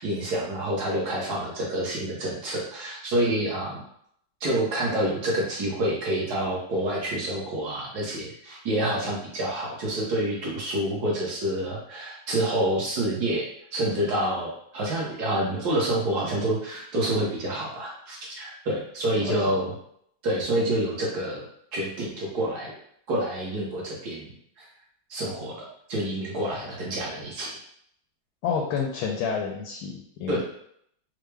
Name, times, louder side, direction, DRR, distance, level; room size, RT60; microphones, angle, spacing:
voice 1, 0.0-3.8 4.4-19.7 20.2-22.7 23.1-24.3 24.6-24.7 25.1-27.5 30.3-30.4, right 1 dB, 60° right, -3 dB, 1.2 m, -28 dB
voice 2, 28.4-30.4, left 6 dB, 85° left, 0 dB, 1.4 m, -29 dB
4.5 x 2.0 x 3.2 m, 0.70 s
omnidirectional pair, 2.2 m